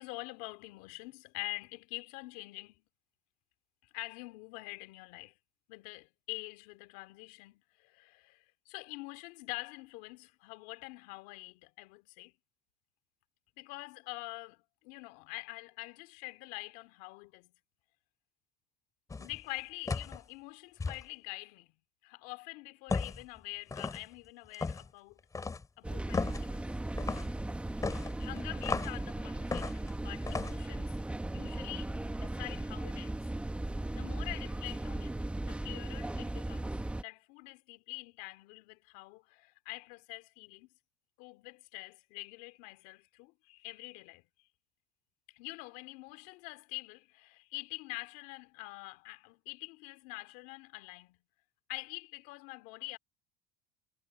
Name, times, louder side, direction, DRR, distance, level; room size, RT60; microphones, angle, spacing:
voice 1, 0.0-2.8 3.9-5.3 5.7-12.3 13.6-17.5 19.2-21.7 22.0-25.2 25.8-26.7 27.9-31.0 31.3-31.9 32.2-33.2 33.9-35.2 35.4-36.8 37.0-40.7 41.2-44.2 45.3-51.2 51.7-53.0, left 24 dB, 75° left, 2.7 m, -45 dB
sound 1, 19.1-19.4 19.9-20.2 20.8-21.0 22.9-23.2 23.7-24.0 24.5-24.9 25.3-25.6 26.1-26.4 27.0-27.3 27.8-29.0 29.5-29.9 30.3-30.6, left 4 dB, 20° left, 3.5 m, -35 dB
sound 2, 25.8-37.0, right 1 dB, 5° right, 1.5 m, -37 dB
supercardioid pair, 100°, 16 cm